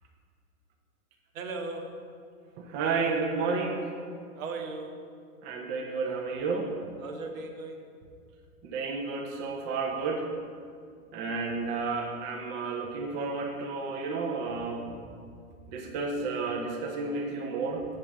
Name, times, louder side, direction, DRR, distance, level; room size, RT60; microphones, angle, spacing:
voice 1, 1.3-2.2 4.3-5.1 7.0-7.9, right 3 dB, 60° right, 4 dB, 1.0 m, -38 dB
voice 2, 2.6-3.9 5.4-6.7 8.6-10.3 11.1-14.9 15.7-17.9, right 4 dB, 25° right, 1 dB, 0.6 m, -31 dB
7.4 x 7.0 x 3.4 m, 2.2 s
figure-of-eight pair, 105°, 46 cm